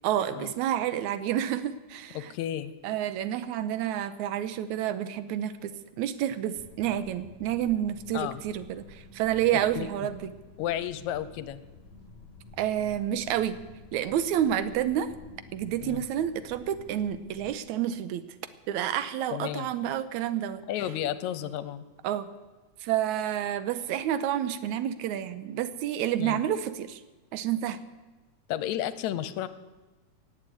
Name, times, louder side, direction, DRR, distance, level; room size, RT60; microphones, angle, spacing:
voice 1, 0.0-2.3 2.8-5.7 6.0-10.3 12.6-13.6 13.9-15.1 15.5-18.2 18.7-20.6 22.0-22.3 22.8-27.0 27.3-27.8, right 11 dB, 85° right, 13 dB, 2.2 m, -29 dB
voice 2, 2.1-2.7 8.1-8.4 9.5-9.9 10.6-11.6 15.8-16.0 19.3-19.7 20.7-21.8 26.2-26.4 28.5-29.5, left 11 dB, 85° left, 14 dB, 2.1 m, -32 dB
sound 1, 6.5-17.6, left 3 dB, 30° left, 3.3 m, -51 dB
17.5 x 7.3 x 9.2 m, 1.2 s
omnidirectional pair, 3.3 m